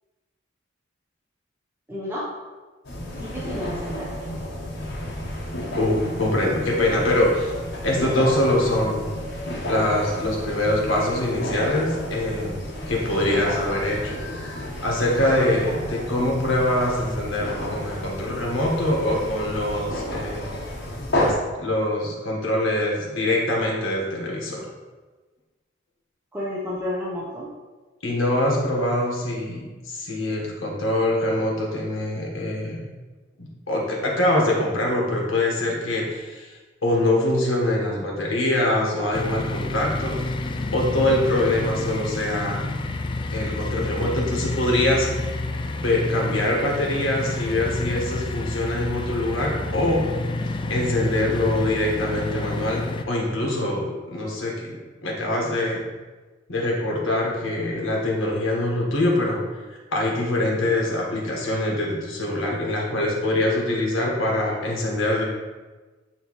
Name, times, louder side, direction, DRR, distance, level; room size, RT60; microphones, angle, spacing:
voice 1, 1.9-2.3 3.1-4.3 26.3-27.5, left 1 dB, 10° right, -8 dB, 0.9 m, -31 dB
sound 1, 2.8-21.3, left 1 dB, 60° left, 1.1 m, -31 dB
voice 2, 5.8-7.5 7.8-9.1 9.7-12.6 12.9-14.2 14.8-20.6 21.1-24.7 28.0-32.8 33.4-36.5 36.8-40.2 40.7-42.7 43.3-45.1 45.7-50.0 50.7-54.8 55.0-55.8 56.5-59.4 59.7-65.2, left 1 dB, 85° left, -2 dB, 1.6 m, -24 dB
sound 2, 39.1-53.0, left 2 dB, 25° left, 0.3 m, -29 dB
9.3 x 3.2 x 3.2 m, 1.3 s
head